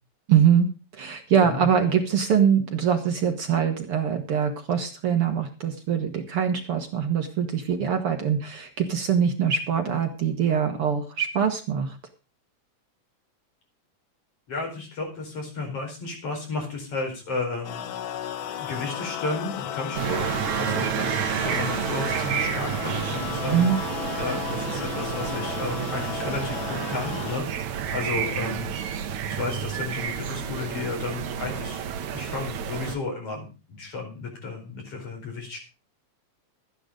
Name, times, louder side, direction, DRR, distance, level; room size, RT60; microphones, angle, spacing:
voice 1, 0.3-0.7 0.9-12.0 23.5-23.8, right 7 dB, 55° right, 5 dB, 2.1 m, -23 dB
voice 2, 14.5-17.9 18.6-23.8 24.2-31.8 32.1-35.6, left 3 dB, 50° left, 2 dB, 5.5 m, -33 dB
sound 1, 17.6-27.4, left 11 dB, 85° left, 1.1 m, -34 dB
sound 2, 19.9-33.0, right 8 dB, 80° right, 2.6 m, -30 dB
13.5 x 10.0 x 5.1 m, 0.32 s
omnidirectional pair, 3.3 m